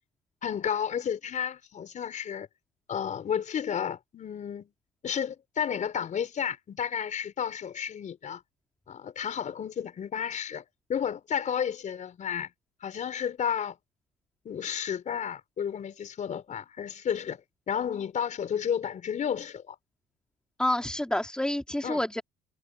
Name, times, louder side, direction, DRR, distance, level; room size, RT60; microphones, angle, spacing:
voice 1, 0.4-2.5 2.9-4.7 5.0-8.4 8.9-10.6 10.9-12.5 12.8-13.8 14.5-17.4 17.7-19.8 21.8-22.0, left 8 dB, 45° left, 5.2 m, -32 dB
voice 2, 20.6-22.2, left 1 dB, 5° left, 3.5 m, -28 dB
cardioid pair, 110°, 17 cm